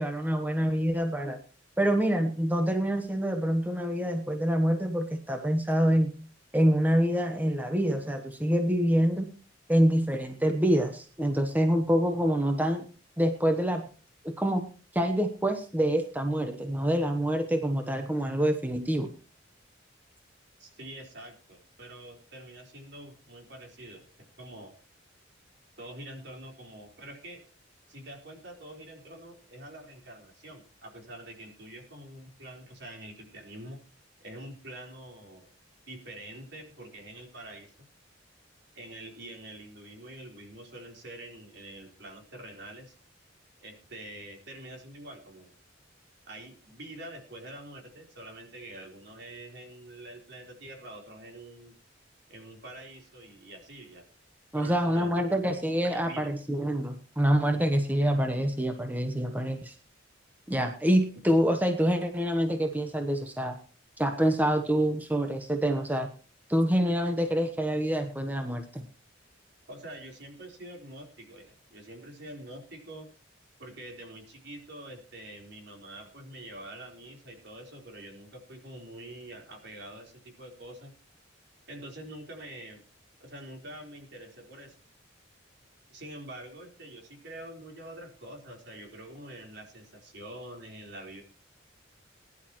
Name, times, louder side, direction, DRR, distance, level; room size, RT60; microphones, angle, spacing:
voice 1, 0.0-1.4 1.8-6.1 6.5-9.3 9.7-12.8 13.2-13.8 14.2-14.6 14.9-19.1 54.5-59.7 60.5-63.6 64.0-66.1 66.5-68.8, equal, 10° right, 5 dB, 1.0 m, -26 dB
voice 2, 20.6-24.1 24.4-24.7 25.8-27.4 27.9-33.8 34.2-35.5 35.9-37.9 38.7-42.9 43.6-45.5 46.3-51.7 52.3-54.0 54.5-55.2 55.5-55.6 55.8-56.3 69.7-73.1 73.6-80.9 81.7-82.8 83.2-84.8 85.9-91.2, right 1 dB, 60° right, 2 dB, 4.1 m, -45 dB
20.5 x 11.0 x 3.1 m, 0.38 s
head